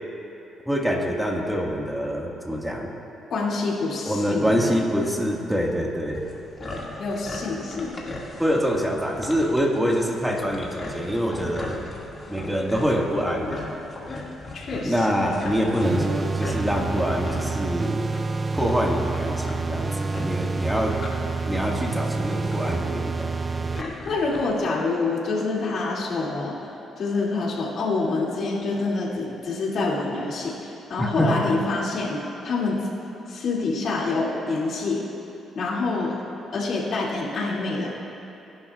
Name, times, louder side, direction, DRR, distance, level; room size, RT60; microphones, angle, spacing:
voice 1, 0.7-2.9 4.0-6.2 8.4-11.8 12.3-13.8 14.8-18.1 18.6-21.0 21.5-23.4 31.0-31.3, equal, 5° right, -1 dB, 1.7 m, -25 dB
voice 2, 3.3-4.7 7.0-8.0 14.5-14.9 23.7-26.5 27.0-32.8 33.3-35.0 35.6-36.2 36.5-37.9, left 3 dB, 60° left, -4 dB, 2.4 m, -26 dB
sound 1, 6.1-24.6, left 2 dB, 35° left, 2.0 m, -39 dB
sound 2, 15.8-23.8, right 3 dB, 30° right, 0.3 m, -28 dB
21.0 x 11.0 x 2.4 m, 2.8 s
cardioid pair, 90°, 0 cm